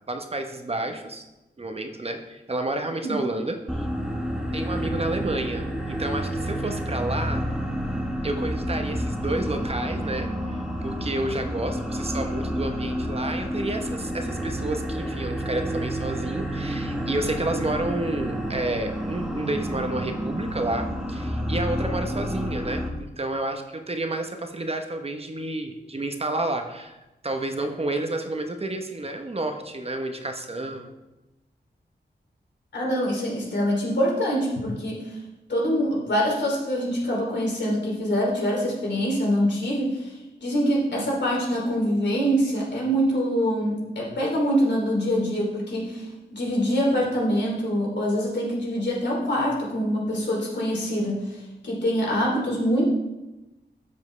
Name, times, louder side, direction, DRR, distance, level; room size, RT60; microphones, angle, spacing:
voice 1, 0.1-1.2 1.6-3.9 4.5-7.4 8.2-27.0 27.2-30.9, right 2 dB, 35° right, 5 dB, 0.9 m, -30 dB
sound 1, 3.7-22.9, equal, 5° right, 1.1 m, -29 dB
voice 2, 32.7-35.2 35.5-52.9, equal, 75° left, -3 dB, 2.9 m, -25 dB
12.5 x 7.3 x 3.2 m, 1.0 s
wide cardioid pair, 110°, 18 cm